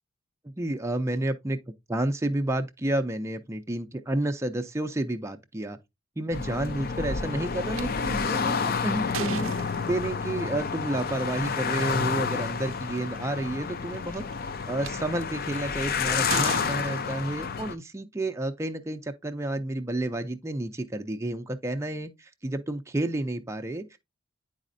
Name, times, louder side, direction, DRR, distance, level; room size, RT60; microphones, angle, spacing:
voice 1, 0.4-1.6 1.9-5.8 6.2-9.5 9.9-14.3 14.7-24.0, right 1 dB, 15° right, 0.4 m, -30 dB
sound 1, 6.3-17.7, left 5 dB, 45° left, 0.5 m, -30 dB
sound 2, 7.7-7.8 8.5-10.3 11.6-11.8 12.4-12.5 12.7-13.2 13.9-14.9 15.5-15.8 16.3-17.7, right 8 dB, 75° right, 0.4 m, -37 dB
9.8 x 4.1 x 2.6 m
head